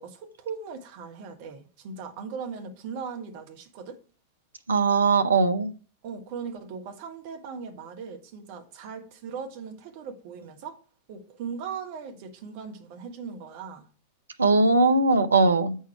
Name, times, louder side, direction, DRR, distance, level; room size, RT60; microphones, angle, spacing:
voice 1, 0.0-4.0 6.0-10.8 11.1-13.9, right 6 dB, 45° right, 1.3 m, -39 dB
voice 2, 4.7-5.7 14.4-15.8, right 3 dB, 75° right, 0.7 m, -20 dB
8.0 x 6.4 x 4.4 m
figure-of-eight pair, 90°, 0 cm